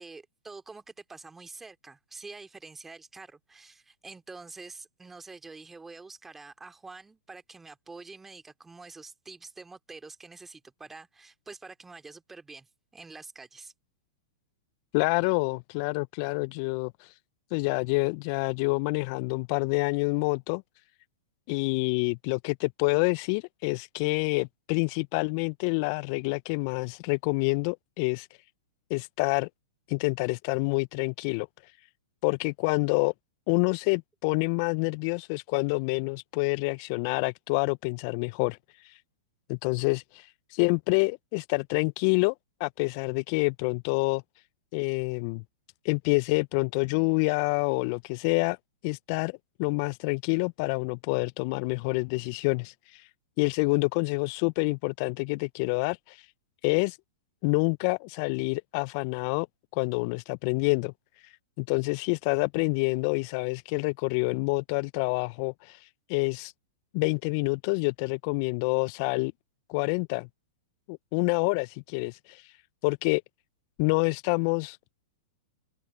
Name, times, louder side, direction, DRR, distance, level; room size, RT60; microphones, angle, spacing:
voice 1, 0.0-13.7 15.2-15.3, right 3 dB, 10° right, 2.5 m, -47 dB
voice 2, 14.9-17.1 17.5-20.6 21.5-28.3 28.9-29.5 29.9-31.5 32.2-33.1 33.5-38.6 38.8-39.0 39.5-42.3 42.6-44.2 44.7-45.4 45.8-48.6 48.8-53.1 53.4-56.3 56.6-57.0 57.4-59.5 59.7-60.9 61.6-66.5 66.9-69.3 69.7-70.3 70.9-72.5 72.8-73.2 73.8-74.8, left 30 dB, 45° left, 0.5 m, -27 dB
open air
hypercardioid pair, 105°, 2 cm